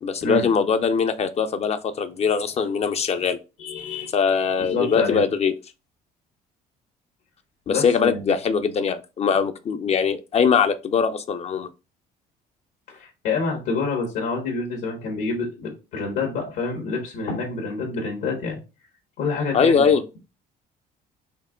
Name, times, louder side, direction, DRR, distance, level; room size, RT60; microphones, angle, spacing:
voice 1, 0.0-3.4 4.1-5.5 7.7-11.7 19.5-20.0, left 6 dB, 40° left, 9 dB, 0.4 m, -21 dB
voice 2, 3.6-4.1 4.6-5.2 7.7-8.2 12.9-18.6 19.2-19.9, left 4 dB, 90° left, 0 dB, 1.5 m, -27 dB
4.5 x 2.9 x 3.7 m, 0.29 s
cardioid pair, 110°, 17 cm